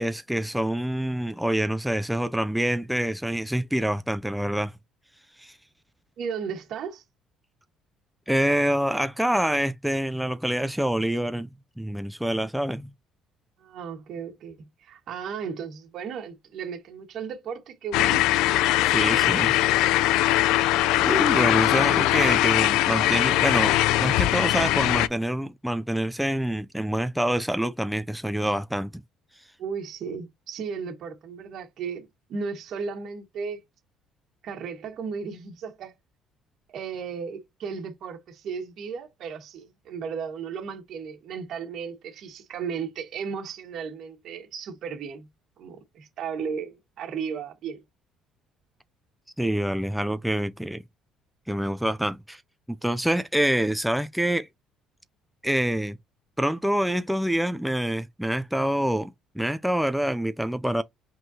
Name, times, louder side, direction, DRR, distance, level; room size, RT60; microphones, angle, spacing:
voice 1, 0.0-4.7 5.4-5.5 8.3-11.5 11.8-12.9 18.8-19.5 20.1-20.4 21.0-29.0 49.4-50.8 51.5-52.4 52.7-54.5 55.4-56.0 56.4-60.8, right 1 dB, ahead, 0.3 m, -26 dB
voice 2, 6.2-7.0 13.6-18.6 21.7-21.8 29.6-33.6 34.4-35.9 36.7-45.3 45.6-47.8, right 6 dB, 45° right, 1.4 m, -35 dB
sound 1, 17.9-25.1, left 15 dB, 80° left, 0.4 m, -21 dB
5.3 x 3.6 x 2.7 m
cardioid pair, 170°, 0 cm